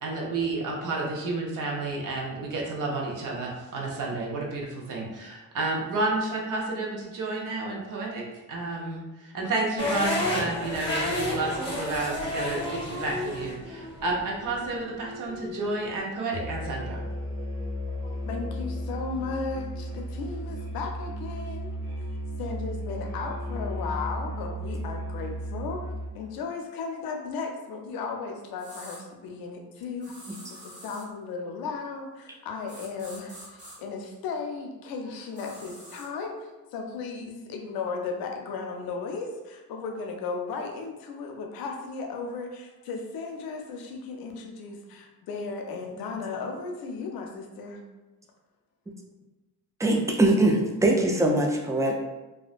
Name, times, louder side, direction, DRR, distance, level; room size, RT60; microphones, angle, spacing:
voice 1, 0.0-17.0, right 2 dB, 60° right, -2 dB, 0.7 m, -31 dB
sound 1, 9.8-15.9, left 1 dB, 15° left, 0.8 m, -32 dB
Musical instrument, 16.3-26.2, equal, 80° right, 1.1 m, -34 dB
voice 2, 18.0-21.7 22.4-25.8 26.1-47.8, left 4 dB, 90° left, 2 dB, 0.5 m, -35 dB
sound 2, 28.6-29.0 30.0-31.1 32.7-33.8 35.3-36.1, equal, 30° right, 1.2 m, -46 dB
voice 3, 49.8-51.9, right 1 dB, 10° right, 1 dB, 0.3 m, -22 dB
2.4 x 2.1 x 2.4 m, 1.1 s
cardioid pair, 80°, 35 cm